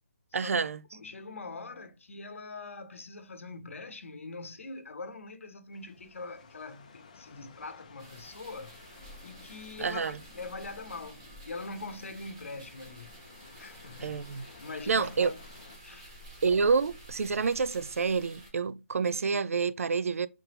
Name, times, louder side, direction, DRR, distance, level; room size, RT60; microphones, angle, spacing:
voice 1, 0.3-0.8 9.8-10.2 14.0-14.5 14.9-15.3 16.4-20.3, right 5 dB, 85° right, 0.3 m, -28 dB
voice 2, 0.9-8.8 9.2-13.1 13.6-15.4 15.8-16.1, left 3 dB, 70° left, 0.8 m, -43 dB
sound 1, 5.7-15.8, left 5 dB, 30° left, 0.5 m, -56 dB
sound 2, 8.0-18.5, right 1 dB, 25° right, 1.3 m, -51 dB
sound 3, 8.8-14.9, left 2 dB, ahead, 0.9 m, -61 dB
3.5 x 3.3 x 2.9 m
hypercardioid pair, 175°, 7 cm